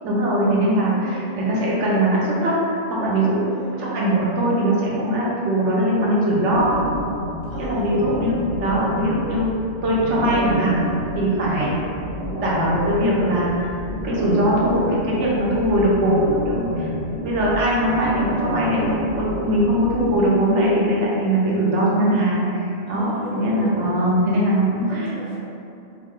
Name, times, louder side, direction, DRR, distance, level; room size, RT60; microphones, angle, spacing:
voice 1, 0.0-3.5 3.8-6.8 7.5-8.3 8.6-9.5 9.8-10.7 11.1-11.7 12.4-22.6 22.9-25.0, right 1 dB, 85° right, -5 dB, 1.1 m, -21 dB
voice 2, 0.7-1.2 3.5-3.9 7.5-8.4 11.5-11.8 22.9-23.9 24.9-25.4, right 1 dB, 45° left, -8 dB, 0.6 m, -36 dB
sound 1, 6.5-20.2, equal, 60° right, 0.8 m, -30 dB
3.7 x 2.1 x 3.6 m, 2.7 s
omnidirectional pair, 1.2 m